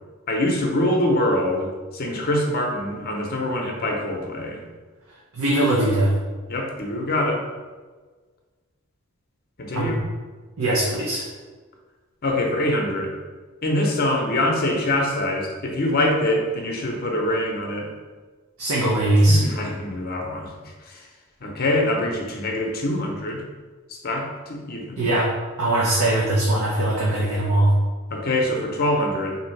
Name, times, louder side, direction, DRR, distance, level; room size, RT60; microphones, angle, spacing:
voice 1, 0.3-4.6 6.5-7.4 9.6-10.0 12.2-13.1 13.6-17.9 19.2-21.1 21.4-23.4 24.0-25.1 28.1-29.4, left 1 dB, 45° left, 1 dB, 0.7 m, -24 dB
voice 2, 5.4-6.1 9.7-9.9 10.6-11.3 18.6-19.4 25.0-25.3 25.6-27.7, right 1 dB, 75° right, -3 dB, 0.7 m, -20 dB
3.6 x 2.7 x 4.5 m, 1.4 s
head